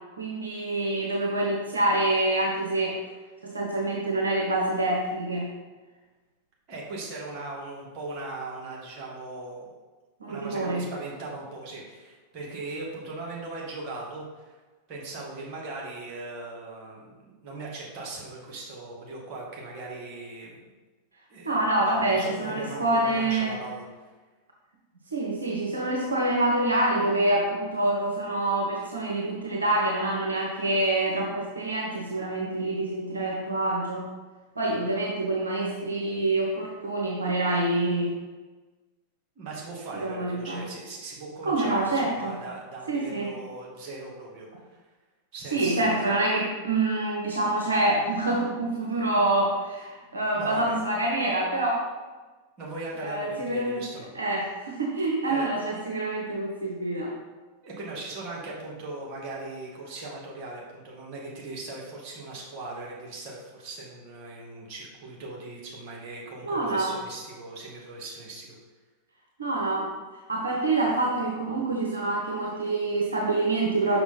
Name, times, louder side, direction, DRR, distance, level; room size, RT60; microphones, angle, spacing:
voice 1, 0.2-3.0 3.4-5.5 10.2-10.8 21.4-23.6 25.1-34.1 34.6-38.2 39.9-40.6 41.4-42.4 42.9-43.3 45.5-51.8 53.0-53.8 54.1-57.1 66.4-67.0 69.4-69.9 70.3-74.0, right 2 dB, 75° right, -1 dB, 0.9 m, -26 dB
voice 2, 6.7-9.7 10.3-14.6 14.9-20.6 21.3-24.0 39.4-44.7 45.3-46.1 49.8-49.9 50.4-50.7 52.6-54.1 55.2-55.5 57.6-68.5, right 2 dB, 35° right, -3 dB, 2.1 m, -39 dB
5.9 x 5.8 x 4.1 m, 1.3 s
figure-of-eight pair, 90°, 0 cm